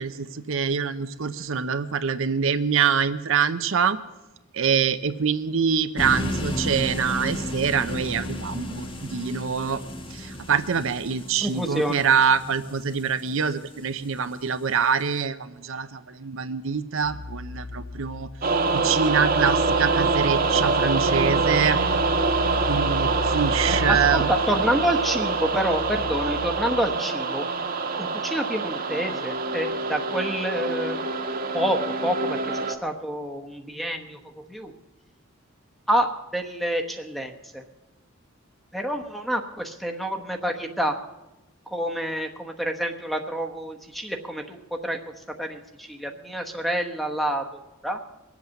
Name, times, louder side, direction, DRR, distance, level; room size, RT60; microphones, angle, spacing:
voice 1, 0.0-4.0 4.5-9.8 10.1-18.3 18.7-21.8 22.7-24.3, right 6 dB, 70° right, 10 dB, 0.7 m, -25 dB
sound 1, 6.0-14.0, left 1 dB, 25° left, 1.3 m, -33 dB
voice 2, 11.4-12.0 23.7-27.5 28.0-31.0 31.5-34.7 35.9-37.6 38.7-41.0 41.7-45.0 45.4-47.4 47.8-48.0, right 1 dB, ahead, 4 dB, 1.1 m, -28 dB
sound 2, 17.0-27.0, left 3 dB, 85° left, 0.7 m, -34 dB
sound 3, 18.4-32.8, right 4 dB, 45° right, 1.3 m, -25 dB
22.0 x 8.2 x 7.0 m, 1.0 s
head